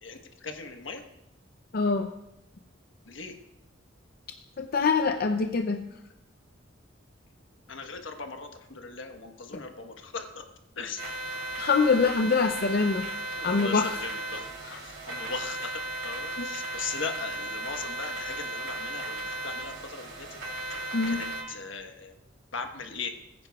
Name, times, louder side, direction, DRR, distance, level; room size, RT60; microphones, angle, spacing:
voice 1, 0.0-1.0 3.0-3.3 7.7-10.4 10.7-11.0 13.4-14.5 14.8-20.4 20.7-20.8 21.1-22.2 22.5-23.1, left 5 dB, 80° left, 5 dB, 1.2 m, -39 dB
voice 2, 1.7-2.1 4.6-5.8 11.6-13.1 13.4-14.0 14.6-14.8 16.4-16.5 20.9-21.2, left 4 dB, 50° left, 5 dB, 0.5 m, -24 dB
sound 1, 11.0-21.4, right 1 dB, 70° right, 2.9 m, -36 dB
20.5 x 9.6 x 2.3 m, 0.86 s
head